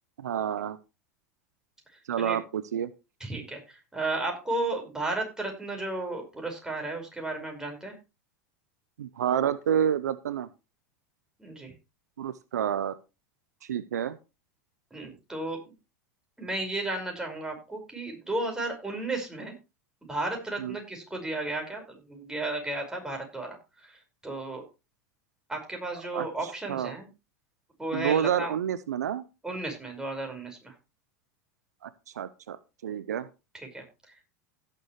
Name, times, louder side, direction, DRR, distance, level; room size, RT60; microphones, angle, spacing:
voice 1, 0.2-0.8 2.1-2.9 9.0-10.5 12.2-13.0 13.6-14.2 20.6-20.8 26.1-26.3 26.7-26.9 27.9-29.2 31.8-33.3, right 9 dB, 85° right, 15 dB, 0.7 m, -29 dB
voice 2, 3.2-8.0 11.4-11.7 14.9-15.7 16.4-19.5 20.0-24.6 25.5-27.1 27.8-28.5 29.4-30.7 33.5-34.2, right 2 dB, 10° right, 2 dB, 5.2 m, -34 dB
16.5 x 6.8 x 3.2 m, 0.28 s
hypercardioid pair, 95°, 9 cm